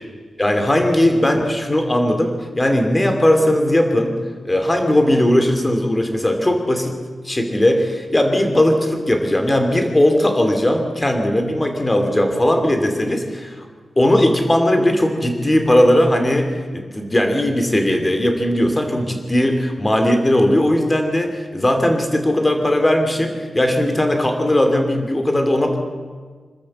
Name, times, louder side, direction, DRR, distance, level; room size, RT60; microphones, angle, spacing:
voice 1, 0.4-4.1 4.4-6.9 7.2-13.6 14.0-16.5 16.7-25.8, left 1 dB, 15° left, 5 dB, 2.7 m, -18 dB
26.5 x 13.0 x 7.6 m, 1.5 s
wide cardioid pair, 140°, 0 cm